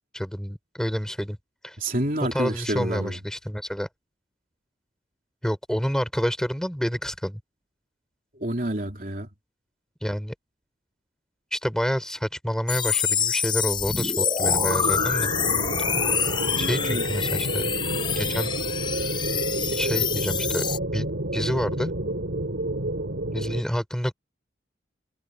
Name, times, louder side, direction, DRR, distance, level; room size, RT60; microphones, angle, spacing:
voice 1, 0.1-1.4 1.6-1.8 2.3-3.9 5.4-7.4 10.0-10.3 11.5-15.3 16.6-17.7 18.1-18.5 19.7-20.6 20.9-21.1 21.3-21.9 23.3-24.1, equal, 5° left, 5.9 m, -28 dB
voice 2, 1.8-3.2 8.4-9.3 16.5-17.0, right 1 dB, 50° right, 3.5 m, -29 dB
sound 1, 12.7-20.8, left 7 dB, 25° left, 0.6 m, -26 dB
sound 2, 14.4-23.6, right 1 dB, 80° right, 3.0 m, -29 dB
head